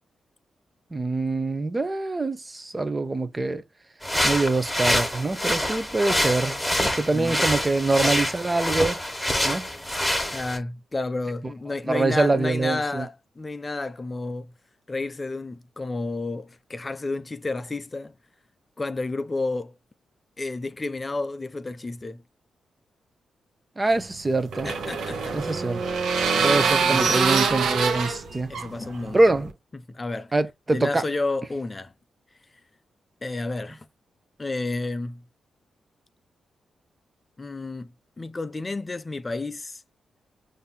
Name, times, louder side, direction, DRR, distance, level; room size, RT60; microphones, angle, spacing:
voice 1, 0.9-3.6 4.2-9.0 9.4-9.7 11.9-13.0 23.8-24.7 25.3-25.8 26.4-28.5 29.1-29.5 30.3-31.0, right 2 dB, 25° right, 0.6 m, -24 dB
sound 1, 4.0-10.6, left 1 dB, 5° left, 1.3 m, -26 dB
voice 2, 10.3-14.5 14.9-18.1 18.8-19.8 20.4-22.2 24.6-25.4 25.6-25.8 26.3-27.2 28.5-29.2 29.7-30.3 30.7-31.9 33.2-33.9 34.4-35.2 37.4-37.9 38.2-39.8, left 3 dB, 30° left, 0.4 m, -31 dB
sound 2, 24.0-29.5, right 5 dB, 80° right, 0.8 m, -25 dB
5.4 x 2.6 x 2.2 m
cardioid pair, 65°, 0 cm